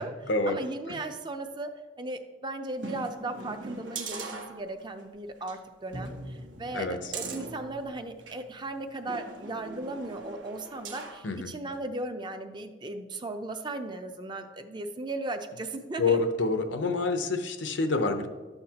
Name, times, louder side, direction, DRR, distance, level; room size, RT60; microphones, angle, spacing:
voice 1, 0.5-1.7 2.0-16.3, right 2 dB, 25° right, 6 dB, 0.6 m, -37 dB
sound 1, 2.8-5.0 5.4-5.5 5.9-8.4 9.1-11.3 11.7-11.8, right 3 dB, 90° right, 1.2 m, -40 dB
voice 2, 6.7-7.1 11.2-11.5 16.0-18.3, left 3 dB, 80° left, 7 dB, 0.8 m, -27 dB
12.0 x 7.9 x 2.9 m, 1.3 s
head